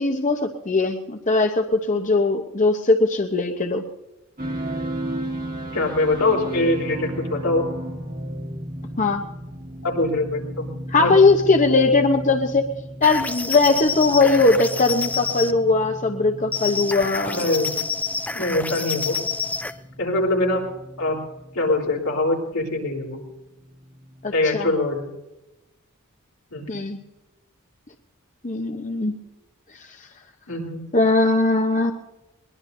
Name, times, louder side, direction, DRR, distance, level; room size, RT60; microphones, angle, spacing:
voice 1, 0.0-3.8 9.0-9.2 10.9-12.6 13.0-17.5 24.2-24.7 26.7-27.0 28.4-29.2 30.9-31.9, left 3 dB, 35° left, 5 dB, 0.9 m, -19 dB
sound 1, 4.4-24.3, equal, 40° right, 1.7 m, -35 dB
voice 2, 5.7-7.7 9.8-11.1 17.3-17.8 18.3-19.2 20.0-20.7 21.0-21.2 21.5-23.2 24.3-25.1 26.5-26.7 30.5-30.9, left 2 dB, 85° left, -1 dB, 3.7 m, -23 dB
sound 2, 13.0-15.6 16.5-19.8, left 4 dB, 5° left, 0.4 m, -28 dB
21.5 x 21.0 x 2.7 m, 0.98 s
head